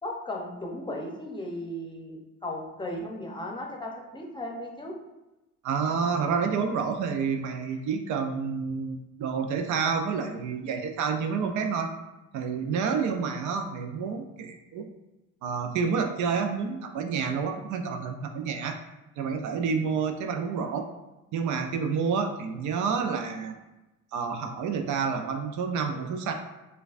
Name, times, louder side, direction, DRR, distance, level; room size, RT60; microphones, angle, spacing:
voice 1, 0.0-5.0, left 1 dB, 15° left, 0 dB, 0.7 m, -36 dB
voice 2, 5.6-11.9 12.3-14.9 15.4-18.8 19.2-20.9 21.3-23.5 24.1-26.3, right 5 dB, 75° right, 5 dB, 0.5 m, -29 dB
4.5 x 2.2 x 2.4 m, 1.0 s
cardioid pair, 90°, 30 cm